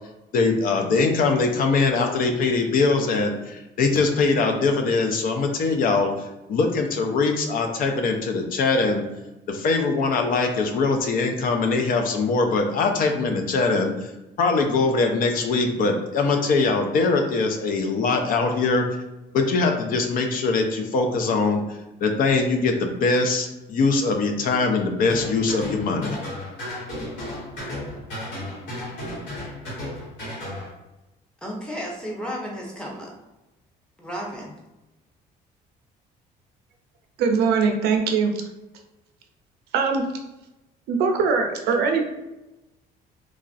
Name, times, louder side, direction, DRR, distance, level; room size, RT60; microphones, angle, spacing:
voice 1, 0.3-9.0 9.5-14.1 14.4-18.8 19.3-26.2, left 3 dB, 55° left, 4 dB, 0.4 m, -22 dB
sound 1, 25.0-30.7, left 1 dB, 85° left, 1.1 m, -34 dB
voice 2, 31.4-33.1 34.0-34.6, equal, 5° left, -3 dB, 0.7 m, -33 dB
voice 3, 37.2-38.3 39.7-40.0 40.9-42.0, right 5 dB, 75° right, 4 dB, 0.5 m, -21 dB
3.0 x 2.4 x 2.4 m, 0.98 s
cardioid pair, 110°, 17 cm